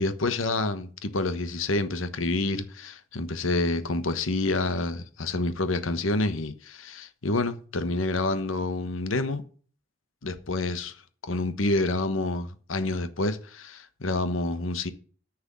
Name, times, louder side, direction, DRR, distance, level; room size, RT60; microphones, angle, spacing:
voice 1, 0.0-9.4 10.2-10.9 11.2-14.9, left 2 dB, 90° left, 1.2 m, -28 dB
10.0 x 6.2 x 7.5 m
head